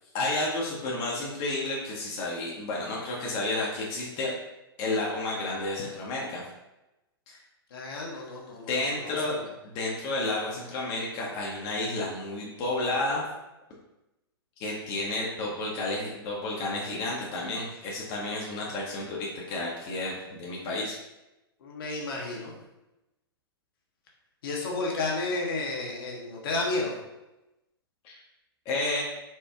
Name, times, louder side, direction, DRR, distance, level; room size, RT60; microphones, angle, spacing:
voice 1, 0.1-4.3 4.8-6.4 7.3-7.4 8.7-9.4 9.6-13.2 14.6-20.9 28.0-28.2 28.6-29.0, left 2 dB, 40° left, -4 dB, 0.9 m, -31 dB
voice 2, 7.7-9.3 21.6-22.5 24.4-26.9, left 3 dB, 65° left, -2 dB, 1.1 m, -32 dB
4.4 x 2.2 x 3.5 m, 0.98 s
hypercardioid pair, 120°, 13 cm